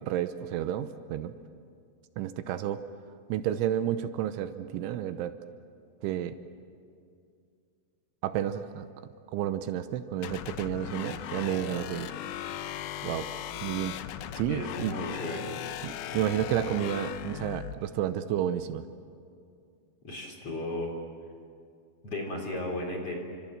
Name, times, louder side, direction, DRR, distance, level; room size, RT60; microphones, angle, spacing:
voice 1, 0.0-1.3 2.2-2.8 3.3-5.4 6.0-6.4 8.2-8.9 9.3-12.1 13.0-13.3 13.6-14.0 14.3-15.0 15.8-18.9, right 11 dB, 80° right, 10 dB, 3.2 m, -31 dB
sound 1, 10.2-17.8, left 10 dB, 80° left, 2.2 m, -38 dB
voice 2, 14.5-15.5 20.0-20.9 22.0-23.1, left 1 dB, 35° left, 1 dB, 3.9 m, -35 dB
30.0 x 25.5 x 7.6 m, 2.3 s
omnidirectional pair, 5.7 m